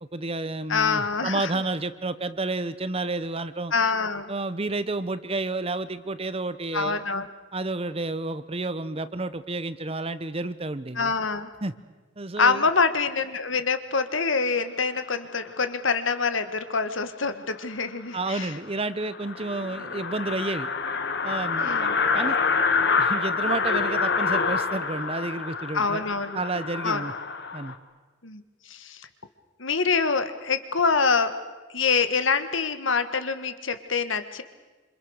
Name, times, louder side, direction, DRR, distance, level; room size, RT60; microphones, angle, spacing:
voice 1, 0.0-3.7 4.3-7.0 7.5-11.1 11.6-11.7 12.2-12.7 18.1-20.7 21.2-21.7 22.1-22.4 23.0-26.0 26.3-27.1 27.5-27.7, right 2 dB, 30° right, 13 dB, 0.9 m, -30 dB
voice 2, 0.7-1.6 3.7-4.3 6.7-7.3 10.9-11.5 12.4-18.5 21.6-21.9 25.7-26.4 26.8-27.0 28.2-29.1 29.6-31.4 31.7-34.4, left 5 dB, 70° left, 10 dB, 1.7 m, -25 dB
sound 1, 17.8-17.9 18.3-18.4 18.7-18.8 19.0-27.7, left 4 dB, 55° left, 1.8 m, -27 dB
27.0 x 26.5 x 6.5 m, 1.2 s
head